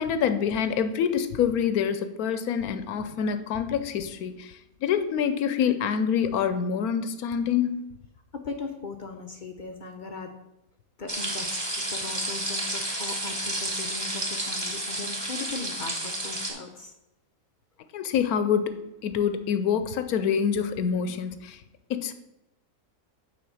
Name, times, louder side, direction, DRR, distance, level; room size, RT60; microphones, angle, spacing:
voice 1, 0.0-7.8 17.9-18.7 19.0-21.6 21.9-22.1, left 7 dB, 75° left, 10 dB, 1.1 m, -26 dB
voice 2, 8.3-10.4 11.0-16.9, left 4 dB, 55° left, 5 dB, 0.5 m, -38 dB
sound 1, 11.1-16.5, right 1 dB, 15° right, 1.5 m, -31 dB
8.5 x 4.1 x 6.2 m, 0.90 s
omnidirectional pair, 1.7 m